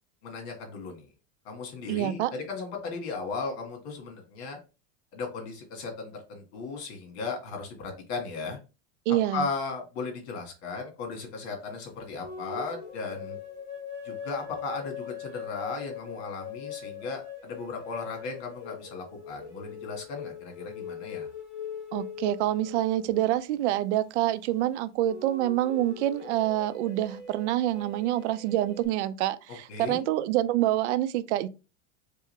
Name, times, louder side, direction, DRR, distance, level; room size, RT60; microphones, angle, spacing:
voice 1, 0.2-1.1 1.5-4.6 5.1-8.6 9.3-13.4 14.0-21.3 29.7-30.1, left 4 dB, 70° left, 1.8 m, -36 dB
voice 2, 1.9-2.3 9.1-9.5 21.9-31.5, right 14 dB, 80° right, 0.5 m, -27 dB
sound 1, 12.2-23.6 25.0-28.9, left 7 dB, 25° left, 1.6 m, -41 dB
3.8 x 3.5 x 3.2 m
supercardioid pair, 170°, 34 cm